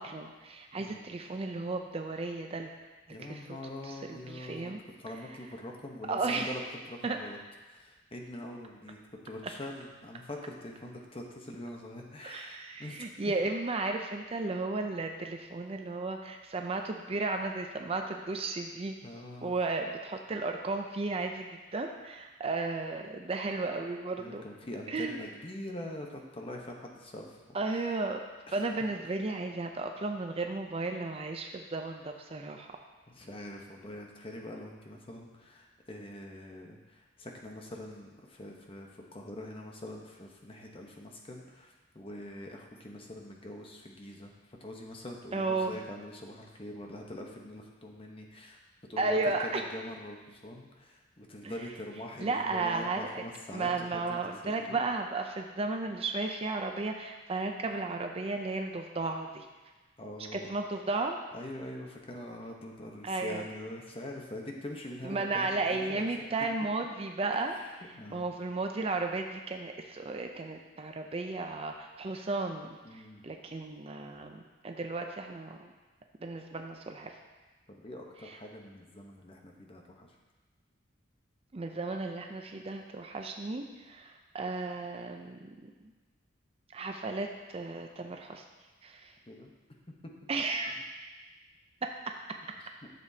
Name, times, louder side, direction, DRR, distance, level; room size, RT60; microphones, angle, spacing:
voice 1, 0.0-2.7 3.3-3.6 3.8-4.8 5.3-5.4 6.1-6.5 7.0-7.2 12.2-19.0 19.4-24.4 24.9-25.2 27.5-28.2 28.5-32.7 45.3-45.8 49.0-49.6 51.4-51.5 52.2-53.2 53.5-59.5 60.3-61.2 63.0-63.5 65.0-67.6 68.1-75.7 76.2-77.1 78.2-78.4 81.5-85.7 86.7-88.4 88.8-89.1 90.3-90.7 91.8-92.1, right 3 dB, 30° right, 4 dB, 0.5 m, -34 dB
voice 2, 0.7-1.1 3.1-4.7 5.0-6.6 6.9-7.4 7.7-9.0 9.2-13.3 19.0-19.5 24.2-27.6 28.5-28.6 33.1-44.3 44.6-48.6 48.9-54.8 60.0-60.5 61.3-66.2 67.5-67.6 68.0-68.3 72.8-73.2 77.7-80.1 89.3-89.5 90.0-90.1 92.8-92.9, left 1 dB, 30° left, 1 dB, 0.9 m, -44 dB
11.5 x 6.9 x 2.8 m, 1.2 s
head